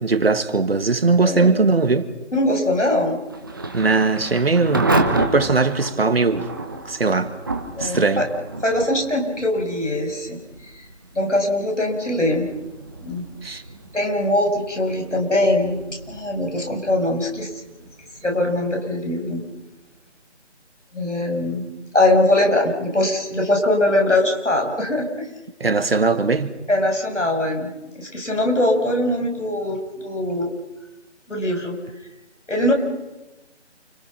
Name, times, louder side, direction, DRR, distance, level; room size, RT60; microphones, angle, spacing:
voice 1, 0.0-2.1 3.7-6.5 6.9-7.3 7.8-8.3 13.4-13.6 25.6-26.5, right 3 dB, 55° right, 1.8 m, -19 dB
voice 2, 1.2-1.6 2.3-3.2 7.7-8.3 8.6-10.4 10.7-10.8 11.1-12.5 13.0-13.6 13.9-15.8 16.1-17.5 18.2-19.4 20.9-21.7 21.9-25.3 26.7-30.5 31.3-31.8 32.5-32.7, left 1 dB, 90° left, 7.2 m, -21 dB
Thunder / Rain, 3.3-20.0, right 2 dB, 20° right, 1.0 m, -31 dB
29.0 x 24.5 x 6.0 m
figure-of-eight pair, 165°, 35 cm